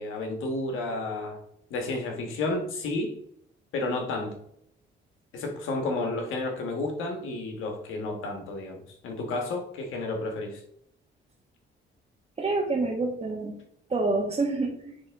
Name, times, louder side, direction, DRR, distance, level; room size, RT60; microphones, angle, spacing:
voice 1, 0.0-1.4 1.7-3.1 3.7-4.3 5.3-10.6, left 2 dB, 90° left, 3 dB, 1.4 m, -31 dB
voice 2, 12.4-13.6 13.9-14.9, right 3 dB, 30° right, -3 dB, 1.4 m, -27 dB
9.7 x 3.5 x 3.5 m, 0.73 s
cardioid pair, 90°, 20 cm